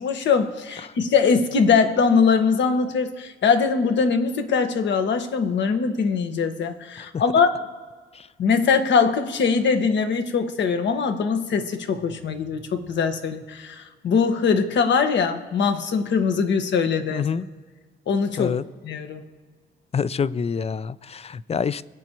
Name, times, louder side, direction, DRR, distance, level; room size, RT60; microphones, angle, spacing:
voice 1, 0.0-7.6 8.4-17.3 18.1-18.5 18.8-19.2, left 5 dB, 65° left, 6 dB, 1.4 m, -22 dB
voice 2, 17.1-17.5 18.4-18.6 19.9-21.8, left 6 dB, 30° left, 18 dB, 0.4 m, -26 dB
24.5 x 8.2 x 3.0 m, 1.5 s
cardioid pair, 90°, 20 cm